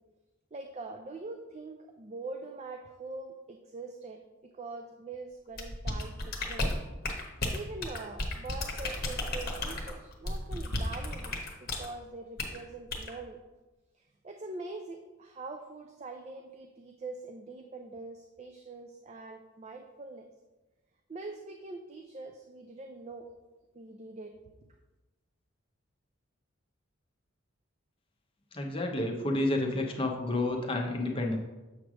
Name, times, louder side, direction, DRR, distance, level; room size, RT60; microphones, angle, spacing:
voice 1, 0.5-4.2 4.5-6.7 7.5-13.4 13.9-20.3 21.1-23.3 23.7-24.3, right 3 dB, 30° right, 4 dB, 0.4 m, -43 dB
sound 1, 5.6-11.9 12.4-12.6 12.9-13.1, left 2 dB, 45° left, 1.1 m, -33 dB
voice 2, 28.5-31.4, left 2 dB, 25° left, 2 dB, 0.7 m, -30 dB
7.2 x 3.2 x 6.1 m, 1.1 s
head